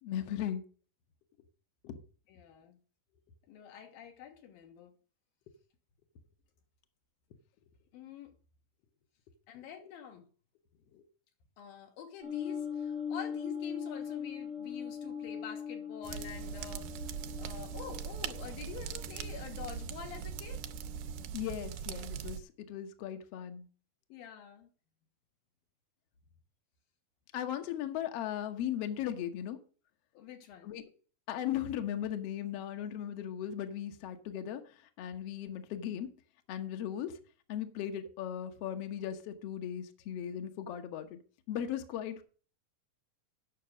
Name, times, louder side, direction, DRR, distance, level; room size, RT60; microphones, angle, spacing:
voice 1, 0.0-0.6 1.8-2.0 10.9-11.0 21.3-23.7 27.3-29.6 30.6-30.8 31.3-34.6 35.0-36.1 36.5-37.2 37.5-41.2 41.5-42.2, left 10 dB, 65° left, 1.6 m, -37 dB
voice 2, 2.3-2.8 3.5-4.9 7.9-8.4 9.5-10.2 11.6-16.9 17.4-20.6 24.1-24.7 30.1-30.7, left 8 dB, 80° left, 3.1 m, -47 dB
sound 1, 12.2-21.2, left 7 dB, 5° right, 0.4 m, -41 dB
sound 2, 16.0-22.4, right 8 dB, 85° right, 2.3 m, -41 dB
9.3 x 6.0 x 6.1 m
omnidirectional pair, 4.1 m